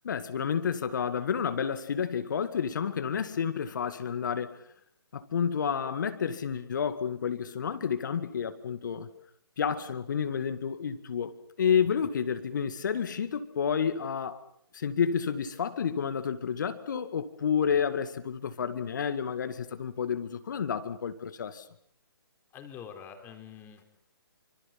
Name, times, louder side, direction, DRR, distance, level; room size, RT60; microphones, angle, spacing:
voice 1, 0.0-4.6 5.1-9.1 9.6-11.3 11.6-14.4 14.7-21.7, left 7 dB, 50° left, 2.0 m, -30 dB
voice 2, 22.5-23.8, left 8 dB, 15° left, 3.8 m, -45 dB
28.0 x 25.5 x 5.8 m
figure-of-eight pair, 140°, 13 cm